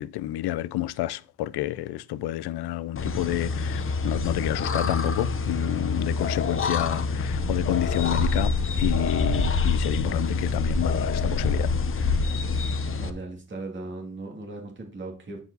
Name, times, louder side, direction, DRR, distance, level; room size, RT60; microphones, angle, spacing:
voice 1, 0.0-11.7, left 15 dB, 80° left, 0.6 m, -29 dB
sound 1, 3.0-13.1, left 4 dB, 30° left, 0.9 m, -26 dB
voice 2, 13.0-15.4, right 2 dB, 30° right, 2.4 m, -37 dB
9.6 x 4.9 x 3.9 m
cardioid pair, 110°, 39 cm